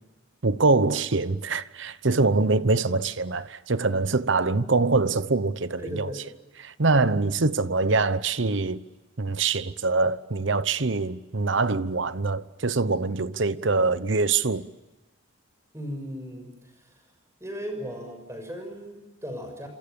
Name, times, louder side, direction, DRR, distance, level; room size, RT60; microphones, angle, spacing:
voice 1, 0.4-6.1 6.6-8.8 9.2-14.6, right 3 dB, 60° right, 0.9 m, -24 dB
voice 2, 5.8-6.2 15.7-16.5 17.4-19.7, equal, 15° right, 6.8 m, -36 dB
29.0 x 27.5 x 7.0 m
head